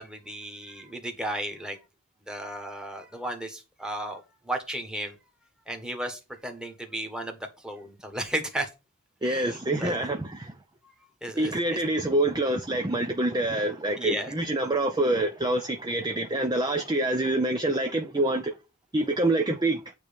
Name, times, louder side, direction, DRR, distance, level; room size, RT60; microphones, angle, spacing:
voice 1, 0.0-1.8 2.3-5.1 5.7-8.7 9.2-9.9 11.2-11.8 14.0-14.3, right 1 dB, 5° right, 1.5 m, -34 dB
voice 2, 9.2-10.6 11.4-18.6 18.9-19.8, right 1 dB, 20° right, 0.6 m, -26 dB
9.0 x 3.2 x 5.2 m
head